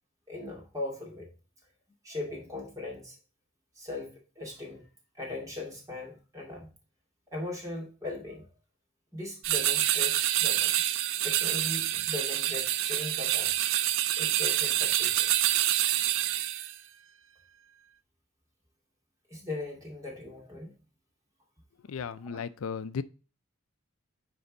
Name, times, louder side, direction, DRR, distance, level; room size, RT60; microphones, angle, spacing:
voice 1, 0.3-1.3 2.0-3.2 3.8-4.9 5.1-6.7 7.3-8.5 9.1-10.7 11.2-13.6 14.2-15.3 19.3-20.7 22.3-22.4, left 2 dB, 15° right, 2.2 m, -39 dB
sound 1, 9.4-16.7, right 13 dB, 65° right, 0.4 m, -27 dB
voice 2, 21.9-23.0, left 6 dB, 90° left, 0.4 m, -35 dB
9.5 x 3.4 x 4.0 m
head